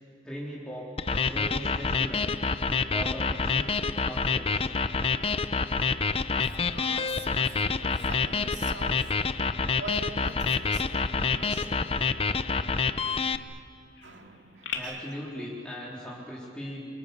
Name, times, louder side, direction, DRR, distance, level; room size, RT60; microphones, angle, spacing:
voice 1, 0.2-0.9 1.2-2.4 2.7-3.7 4.0-4.7 14.7-16.8, equal, 5° left, -6 dB, 3.7 m, -39 dB
sound 1, 1.0-13.4, left 4 dB, 30° left, 0.7 m, -27 dB
Bird vocalization bird call bird song, 1.2-14.8, left 7 dB, 75° left, 3.0 m, -49 dB
voice 2, 5.0-5.4 6.3-12.0 14.0-15.0, right 3 dB, 70° right, 3 dB, 2.8 m, -45 dB
28.5 x 27.0 x 6.7 m, 2.3 s
head